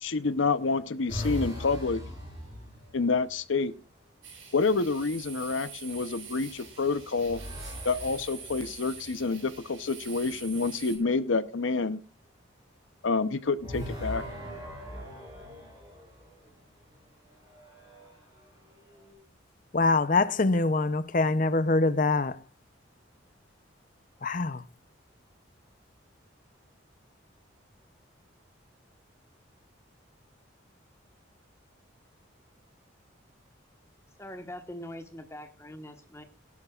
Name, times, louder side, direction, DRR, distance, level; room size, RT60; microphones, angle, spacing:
voice 1, 0.0-2.0 2.9-3.7 4.5-7.4 7.8-12.0 13.0-14.2, left 4 dB, 75° left, 0.8 m, -28 dB
sound 1, 1.1-3.3 4.6-5.1 6.2-9.6 13.6-16.5 17.3-19.1, equal, 20° right, 7.6 m, -41 dB
sound 2, 4.2-11.0, right 6 dB, 80° right, 6.4 m, -45 dB
voice 2, 19.7-22.4 24.2-24.6, left 3 dB, 40° left, 0.6 m, -24 dB
voice 3, 34.2-36.2, left 1 dB, 15° left, 1.3 m, -42 dB
18.5 x 12.0 x 2.4 m
head